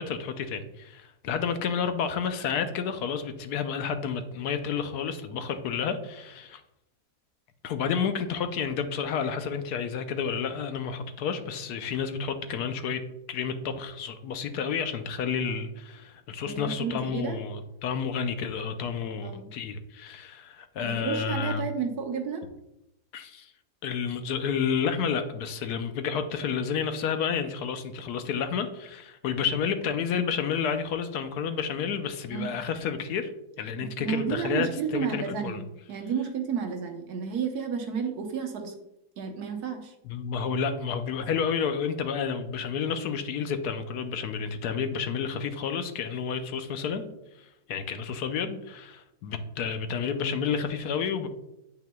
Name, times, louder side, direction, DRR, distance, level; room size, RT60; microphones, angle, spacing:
voice 1, 0.0-6.6 7.6-13.0 13.3-21.7 23.1-23.5 23.8-33.3 33.6-35.6 40.0-47.1 47.7-51.3, left 6 dB, 75° left, 8 dB, 1.1 m, -30 dB
voice 2, 16.5-17.4 19.2-19.5 20.8-22.5 32.3-32.6 33.8-35.6 35.9-38.7 39.2-39.9, right 7 dB, 75° right, 4 dB, 1.4 m, -32 dB
9.3 x 5.6 x 2.3 m, 0.86 s
omnidirectional pair, 1.7 m